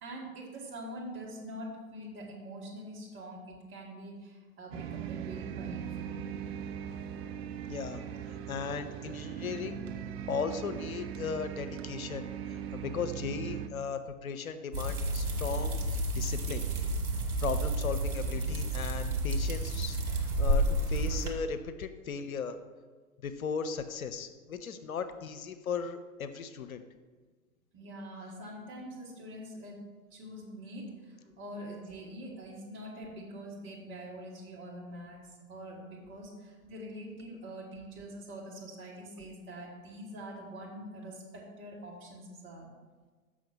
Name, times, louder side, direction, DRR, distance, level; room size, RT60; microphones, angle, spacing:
voice 1, 0.0-6.2 24.8-24.9 27.7-29.8 30.1-42.7, right 1 dB, 25° right, -3 dB, 2.0 m, -44 dB
sound 1, 4.7-13.7, right 8 dB, 50° right, 0.6 m, -39 dB
voice 2, 7.7-8.0 8.5-9.8 10.3-16.6 17.4-22.6 23.2-26.8, left 6 dB, 75° left, 9 dB, 0.7 m, -37 dB
sound 2, 14.7-21.3, right 1 dB, 70° right, 1.4 m, -30 dB
6.4 x 6.2 x 5.5 m, 1.4 s
figure-of-eight pair, 95°, 43 cm